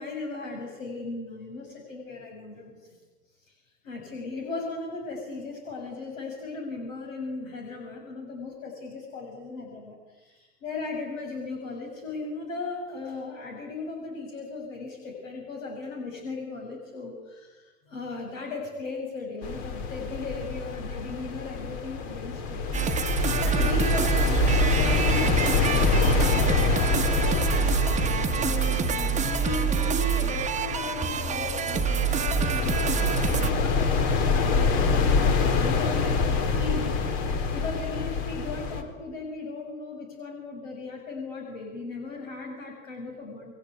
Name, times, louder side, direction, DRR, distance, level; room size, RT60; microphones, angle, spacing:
voice 1, 0.0-3.0 3.5-3.6 3.8-23.0 23.4-28.0 28.3-36.9 37.5-43.5, left 3 dB, 70° left, 1 dB, 7.2 m, -37 dB
sound 1, 19.4-38.8, left 5 dB, 50° left, 4.3 m, -26 dB
sound 2, 22.7-33.5, right 8 dB, 15° right, 1.4 m, -27 dB
29.0 x 23.0 x 8.3 m, 1.2 s
figure-of-eight pair, 90°, 42 cm